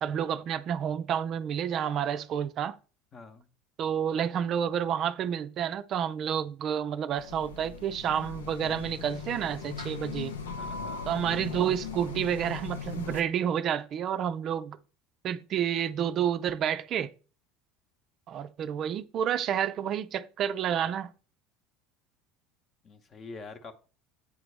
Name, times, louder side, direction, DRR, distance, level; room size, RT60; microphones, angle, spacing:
voice 1, 0.0-2.8 3.8-10.3 11.1-14.8 15.2-17.1 18.3-21.1, right 9 dB, 45° right, 0.3 m, -29 dB
voice 2, 3.1-3.5 10.6-11.2 22.8-23.7, left 4 dB, 35° left, 0.9 m, -46 dB
sound 1, 7.2-13.2, left 5 dB, 85° left, 0.6 m, -39 dB
8.2 x 3.9 x 3.3 m
hypercardioid pair, 75°, 0 cm